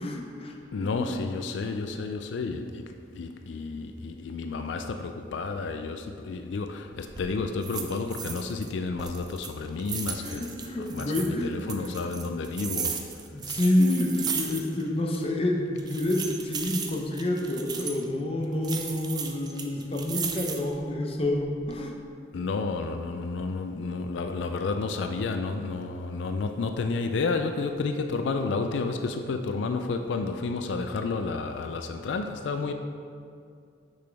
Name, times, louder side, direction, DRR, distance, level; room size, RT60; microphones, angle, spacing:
voice 1, 0.0-0.5 0.9-1.1 10.2-11.9 13.3-21.9, left 1 dB, 30° left, 1 dB, 0.7 m, -28 dB
voice 2, 0.7-2.8 3.1-10.5 10.9-13.0 22.3-32.7, left 4 dB, 85° left, 6 dB, 0.4 m, -31 dB
sound 1, 6.9-7.3 7.6-8.7 9.0-11.3 11.7-14.9 15.1-15.2 15.8-18.0 18.6-20.8 21.3-21.8, right 6 dB, 25° right, 0.4 m, -35 dB
6.4 x 6.0 x 3.4 m, 2.4 s
head